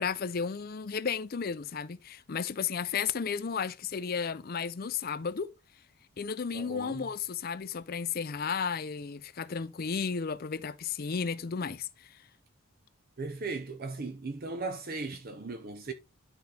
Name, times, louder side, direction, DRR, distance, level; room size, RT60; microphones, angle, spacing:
voice 1, 0.0-5.5 6.2-12.2, left 6 dB, 45° left, 0.4 m, -33 dB
voice 2, 6.5-7.0 13.2-15.9, right 3 dB, 40° right, 0.6 m, -37 dB
11.5 x 4.0 x 3.3 m
head